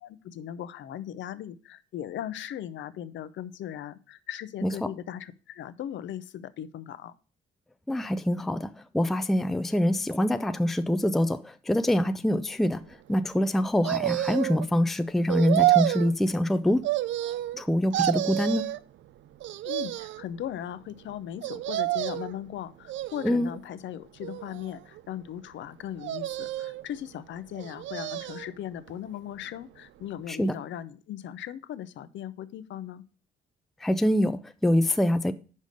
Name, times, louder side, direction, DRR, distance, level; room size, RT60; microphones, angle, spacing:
voice 1, 0.0-7.1 19.6-33.0, left 10 dB, 70° left, 0.6 m, -38 dB
voice 2, 7.9-12.8 13.1-16.8 17.5-18.7 23.2-23.5 30.3-30.5 33.8-35.3, left 1 dB, ahead, 0.4 m, -25 dB
sound 1, 13.8-14.6 15.3-16.1 16.8-17.6 17.9-18.8 19.4-20.2 21.4-22.3 22.9-23.6 24.2-25.0 26.0-26.8 27.6-28.5 28.9-29.0, right 15 dB, 70° right, 0.4 m, -28 dB
5.3 x 5.1 x 6.4 m
cardioid pair, 90°, 20 cm